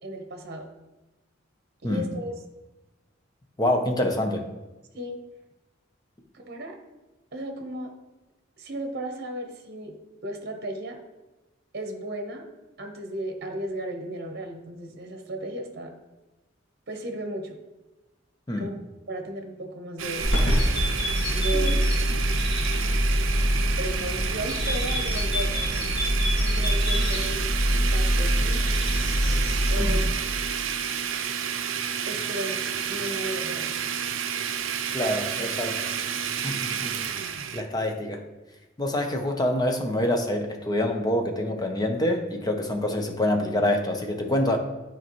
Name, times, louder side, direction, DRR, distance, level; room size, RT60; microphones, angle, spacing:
voice 1, 0.0-0.7 1.8-2.3 4.9-5.2 6.3-6.8 7.3-7.9 8.6-10.0 10.2-11.0 11.7-12.5 12.8-15.9 16.9-17.6 18.6-18.7 19.1-20.3 21.3-21.8 23.8-25.5 26.4-28.6 29.7-30.4 32.1-33.7, right 1 dB, 55° right, 4 dB, 0.9 m, -35 dB
voice 2, 3.6-4.4 18.5-18.7 21.5-21.8 29.8-30.0 34.9-35.8 36.4-37.0 37.5-38.2 38.8-44.6, left 1 dB, 20° left, 4 dB, 0.7 m, -26 dB
Domestic sounds home sounds, 20.0-37.6, right 7 dB, 75° right, 0.5 m, -30 dB
sound 1, 20.2-30.1, equal, 60° left, 1.8 m, -24 dB
9.8 x 4.4 x 3.0 m, 1.1 s
head